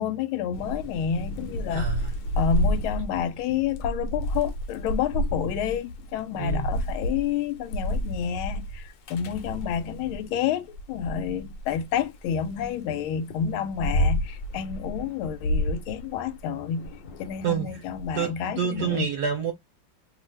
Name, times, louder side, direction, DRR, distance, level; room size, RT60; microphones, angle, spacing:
voice 1, 0.0-1.9 2.4-16.9 17.2-19.1, left 8 dB, 85° left, 1.4 m, -29 dB
Thunder / Rain, 0.5-10.2 10.7-12.7 13.3-18.1, equal, 70° left, 1.2 m, -30 dB
voice 2, 1.7-2.1 6.4-6.7 17.4-17.8 18.1-19.5, right 7 dB, 70° right, 1.0 m, -28 dB
3.1 x 2.4 x 3.1 m
omnidirectional pair, 2.2 m